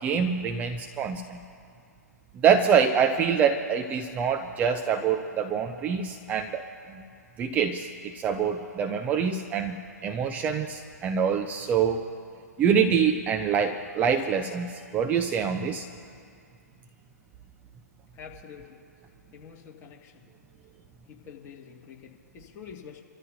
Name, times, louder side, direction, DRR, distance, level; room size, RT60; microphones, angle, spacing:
voice 1, 0.0-1.4 2.4-6.6 7.4-9.8 10.0-12.0 12.6-15.8, right 7 dB, 15° right, 6 dB, 0.6 m, -25 dB
voice 2, 18.2-18.8 19.3-20.1 21.1-23.0, left 7 dB, 25° left, -1 dB, 2.0 m, -46 dB
29.5 x 13.5 x 2.7 m, 2.4 s
figure-of-eight pair, 125°, 9 cm